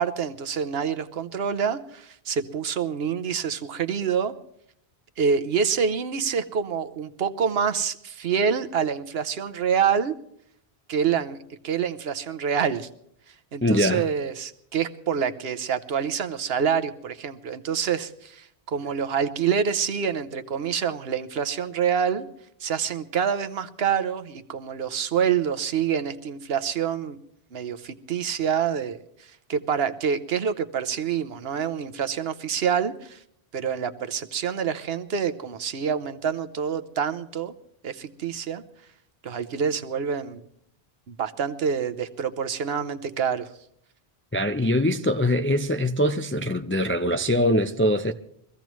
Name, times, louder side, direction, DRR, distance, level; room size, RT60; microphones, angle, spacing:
voice 1, 0.0-4.3 5.2-10.1 10.9-12.9 13.5-22.3 22.6-27.2 27.5-29.0 29.5-33.2 33.5-37.5 37.8-38.6 39.2-40.4 41.1-43.5, right 7 dB, 70° right, 1.0 m, -26 dB
voice 2, 13.6-14.1 44.3-48.1, left 1 dB, 20° left, 0.3 m, -23 dB
23.5 x 15.0 x 3.1 m
omnidirectional pair, 1.1 m